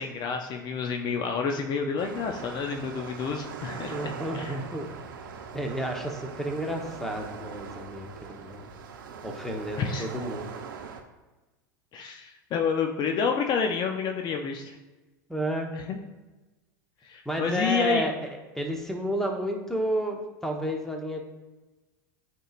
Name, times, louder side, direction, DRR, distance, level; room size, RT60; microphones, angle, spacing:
voice 1, 0.0-4.0 4.3-4.5 9.8-10.1 11.9-14.8 15.7-16.0 17.0-18.0, left 6 dB, 40° left, 4 dB, 0.6 m, -29 dB
sound 1, 2.0-11.0, right 6 dB, 80° right, 0.7 m, -41 dB
voice 2, 3.9-4.9 5.5-8.7 9.2-10.5 15.3-15.7 17.2-18.1 18.5-21.2, right 1 dB, 5° left, 2 dB, 1.0 m, -31 dB
9.0 x 4.5 x 2.5 m, 1.2 s
hypercardioid pair, 90°, 11 cm